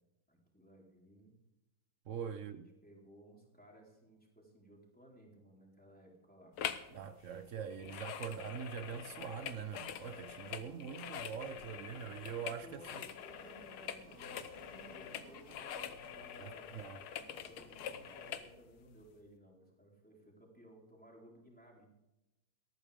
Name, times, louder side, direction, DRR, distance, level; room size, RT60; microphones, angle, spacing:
voice 1, 0.3-1.4 2.4-6.6 12.6-16.7 17.1-21.9, equal, 5° left, 3.9 m, -59 dB
voice 2, 2.1-2.7 6.9-12.8 16.4-17.0, right 7 dB, 85° right, 0.6 m, -43 dB
sound 1, 6.6-6.9 7.2-18.5 19.0-19.1, left 9 dB, 85° left, 1.8 m, -45 dB
sound 2, 8.7-18.3, right 2 dB, 70° right, 5.5 m, -61 dB
18.0 x 14.0 x 3.5 m
omnidirectional pair, 2.2 m